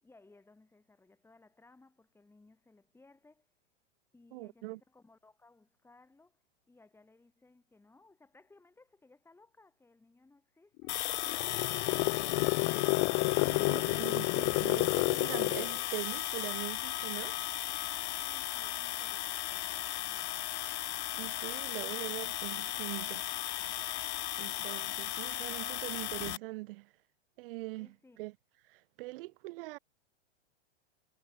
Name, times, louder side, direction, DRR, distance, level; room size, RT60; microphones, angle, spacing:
voice 1, 0.0-3.5 4.1-12.9 18.2-20.5 27.7-28.2 29.1-29.2, left 3 dB, 5° left, 6.5 m, -62 dB
voice 2, 4.3-4.8 13.4-17.4 17.7-17.8 21.1-23.2 24.4-26.9 27.4-27.9 28.2-28.3 28.7-29.8, right 21 dB, 50° right, 1.0 m, -42 dB
sound 1, 10.8-15.8, left 33 dB, 35° left, 1.1 m, -30 dB
sound 2, 10.9-26.4, left 14 dB, 65° left, 2.4 m, -36 dB
hypercardioid pair, 135°, 36 cm